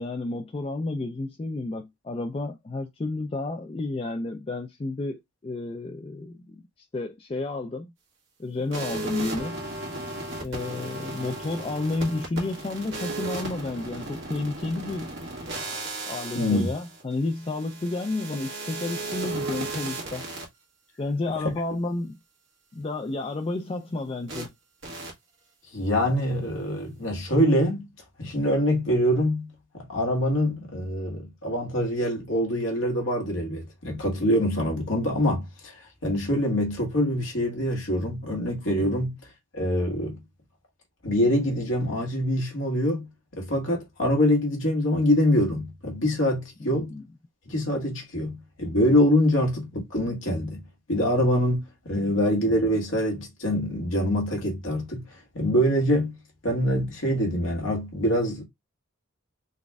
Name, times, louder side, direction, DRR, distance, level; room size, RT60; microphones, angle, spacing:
voice 1, 0.0-6.6 6.9-7.9 8.4-9.6 10.4-15.1 16.1-20.2 21.0-22.2 22.7-24.5 38.8-39.0 46.6-47.0 52.0-52.1, left 2 dB, 25° left, 0.3 m, -31 dB
sound 1, 8.7-20.4 24.3-24.5 24.8-25.1, right 2 dB, 55° right, 1.6 m, -35 dB
voice 2, 16.3-16.7 25.7-27.8 28.2-29.5 29.7-39.1 39.5-40.2 41.0-43.1 43.3-46.9 47.4-50.6 50.9-55.0 55.3-56.1 56.4-58.4, equal, 60° left, 1.6 m, -24 dB
4.0 x 2.5 x 3.4 m
head